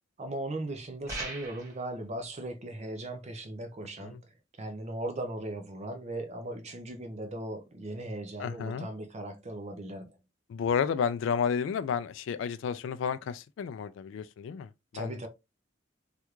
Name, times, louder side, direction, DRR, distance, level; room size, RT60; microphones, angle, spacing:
voice 1, 0.2-4.2 4.6-10.0 14.9-15.3, right 1 dB, 35° right, 0.5 m, -38 dB
sound 1, 1.1-1.8, right 2 dB, 15° right, 1.6 m, -38 dB
voice 2, 8.4-8.9 10.5-15.3, left 7 dB, 75° left, 0.3 m, -31 dB
3.3 x 2.4 x 2.9 m
head